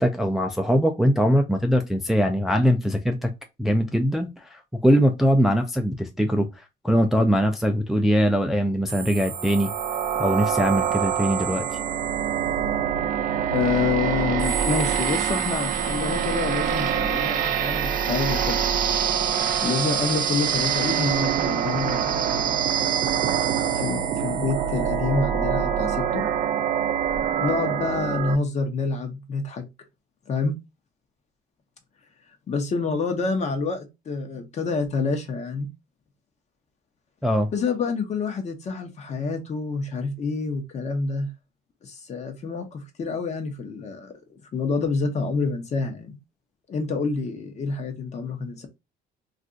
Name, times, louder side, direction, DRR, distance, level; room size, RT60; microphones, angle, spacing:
voice 1, 0.0-3.3 3.6-6.5 6.8-9.7 10.2-11.7 37.2-37.5, equal, ahead, 0.4 m, -21 dB
sound 1, 8.9-28.4, right 8 dB, 55° right, 0.6 m, -25 dB
voice 2, 13.5-18.7 19.6-22.5 23.5-26.2 27.4-29.6 30.3-30.6 32.5-35.7 37.5-41.3 41.8-46.2 46.7-48.7, left 4 dB, 40° left, 0.8 m, -28 dB
2.5 x 2.3 x 3.7 m
cardioid pair, 110°, 17 cm